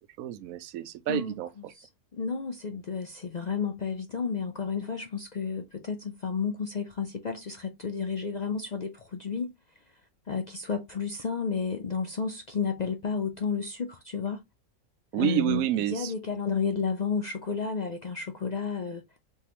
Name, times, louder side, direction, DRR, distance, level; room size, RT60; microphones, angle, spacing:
voice 1, 0.2-1.7 15.1-16.1, right 12 dB, 90° right, 1.0 m, -29 dB
voice 2, 2.1-9.5 10.3-14.4 15.2-15.7 15.9-19.2, left 5 dB, 55° left, 0.4 m, -31 dB
3.9 x 3.7 x 2.9 m
omnidirectional pair, 1.4 m